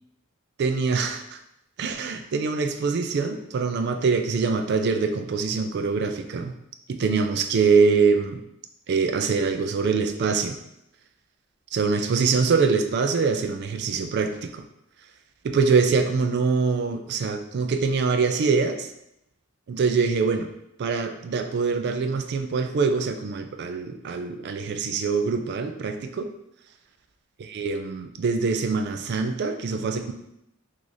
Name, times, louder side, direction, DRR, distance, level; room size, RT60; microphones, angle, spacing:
voice 1, 0.6-1.4 1.8-6.5 6.9-8.4 8.9-10.6 11.7-14.6 15.4-18.9 19.7-20.5 20.8-26.3 27.4-30.1, right 4 dB, 50° right, 6 dB, 0.3 m, -24 dB
3.0 x 2.5 x 3.9 m, 0.81 s
head